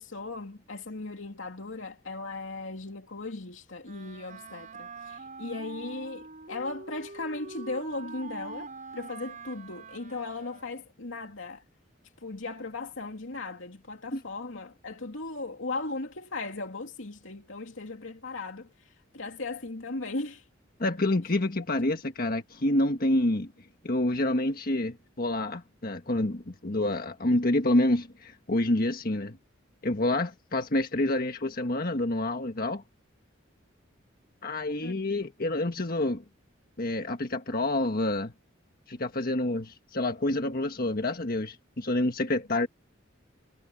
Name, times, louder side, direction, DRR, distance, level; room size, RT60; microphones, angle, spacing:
voice 1, 0.0-11.6 12.2-20.5 21.6-21.7 34.8-35.2, left 3 dB, 75° left, 2.7 m, -37 dB
Wind instrument woodwind instrument, 3.8-11.0, right 3 dB, 40° right, 6.9 m, -44 dB
voice 2, 20.8-23.5 23.8-29.4 29.8-32.8 34.4-36.2 36.8-38.3 38.9-42.7, left 1 dB, 50° left, 1.5 m, -28 dB
head